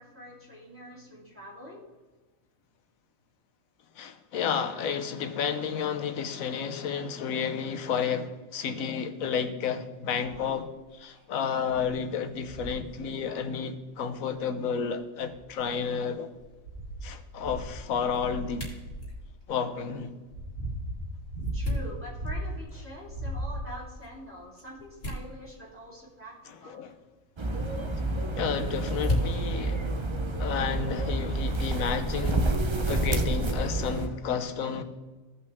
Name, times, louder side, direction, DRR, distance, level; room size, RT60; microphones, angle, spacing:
voice 1, 0.0-1.8 21.5-26.8, equal, 10° right, 3.1 m, -45 dB
voice 2, 4.0-16.3 17.0-18.7 19.5-20.1 26.6-26.9 28.4-29.8 30.4-32.4 32.9-34.8, left 6 dB, 85° left, 1.2 m, -31 dB
sound 1, 10.2-10.5 11.1-11.2 11.7-11.9 12.4-12.9 14.3-14.4 15.1-15.8 16.3-19.2 19.9-22.7 23.0-24.0 24.8-24.9, right 1 dB, 85° right, 3.9 m, -37 dB
sound 2, 16.0-30.9, left 2 dB, 55° left, 3.2 m, -40 dB
sound 3, 27.4-34.1, right 2 dB, 30° right, 0.6 m, -29 dB
16.5 x 5.6 x 3.5 m
omnidirectional pair, 1.4 m